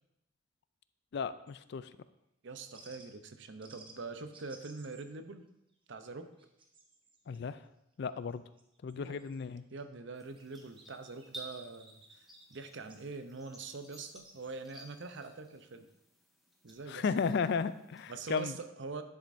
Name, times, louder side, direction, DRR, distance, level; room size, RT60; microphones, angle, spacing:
voice 1, 1.1-1.9 7.3-7.6 8.0-8.4 8.8-9.6 16.9-18.6, left 5 dB, 55° left, 14 dB, 0.3 m, -34 dB
sound 1, 1.5-1.6 2.7-3.1 3.6-4.0 4.3-5.1 5.5-5.7 6.1-7.4 8.1-9.8 10.1-10.9 11.2-13.0 13.9-14.6 14.9-15.0, right 3 dB, 25° right, 0.9 m, -58 dB
voice 2, 2.4-5.5 5.9-6.3 9.0-9.2 9.7-12.2 12.5-15.9 16.6-17.0 18.1-19.0, right 3 dB, 60° right, 9 dB, 0.6 m, -44 dB
sound 2, 10.1-18.5, right 1 dB, ahead, 1.3 m, -55 dB
10.5 x 7.3 x 2.6 m, 0.84 s
head